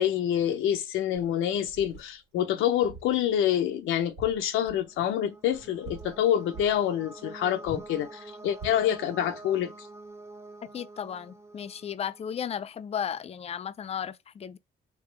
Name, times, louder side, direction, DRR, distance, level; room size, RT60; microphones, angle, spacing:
voice 1, 0.0-9.9, left 10 dB, 85° left, 0.5 m, -27 dB
sound 1, 1.1-2.1 2.8-3.2 3.5-3.6 4.0-5.2 5.5-6.2 6.5-6.8 7.6-8.0 8.6-8.9, right 3 dB, 90° right, 1.7 m, -45 dB
sound 2, 4.8-12.5, right 2 dB, 15° right, 0.6 m, -47 dB
voice 2, 10.6-14.6, left 8 dB, 30° left, 0.4 m, -35 dB
3.3 x 2.9 x 3.2 m
cardioid pair, 90°, 20 cm